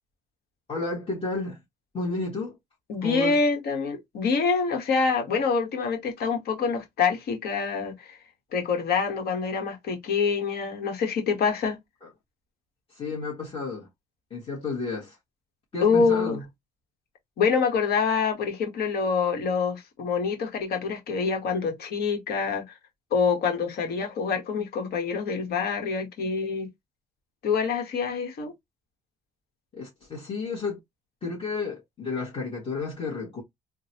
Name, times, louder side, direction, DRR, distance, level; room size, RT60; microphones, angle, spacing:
voice 1, 0.7-1.6 1.9-2.6 3.0-3.4 12.0-12.1 12.9-13.9 14.3-15.2 15.7-16.4 29.7-30.8 31.2-33.4, left 3 dB, 35° left, 1.5 m, -32 dB
voice 2, 2.9-8.2 8.5-11.8 15.8-16.4 17.4-22.7 23.1-26.7 27.4-28.5, left 5 dB, 65° left, 1.3 m, -26 dB
3.8 x 2.3 x 2.9 m
cardioid pair, 110°, 17 cm